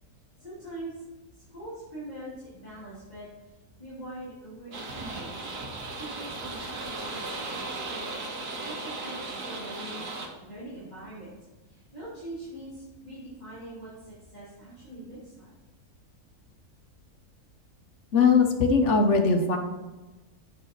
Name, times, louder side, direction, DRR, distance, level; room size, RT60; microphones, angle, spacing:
voice 1, 0.4-1.0 1.3-5.5 6.0-8.2 8.6-10.1 10.4-11.3 11.6-15.5, right 1 dB, 25° left, -12 dB, 2.9 m, -43 dB
sound 1, 4.7-10.3, right 2 dB, 90° right, 1.9 m, -36 dB
voice 2, 18.1-19.6, left 4 dB, 55° left, 5 dB, 1.1 m, -20 dB
7.9 x 6.3 x 4.1 m, 1.2 s
omnidirectional pair, 1.6 m